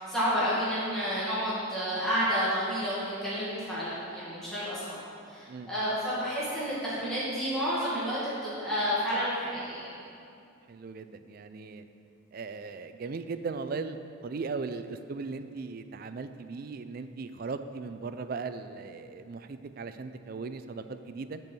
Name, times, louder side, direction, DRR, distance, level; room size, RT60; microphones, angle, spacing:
voice 1, 0.0-5.0 5.2-9.8, equal, ahead, -11 dB, 1.9 m, -30 dB
voice 2, 10.7-11.9 12.3-14.0 14.2-21.4, right 4 dB, 45° right, 10 dB, 0.3 m, -38 dB
7.8 x 4.6 x 7.0 m, 2.5 s
head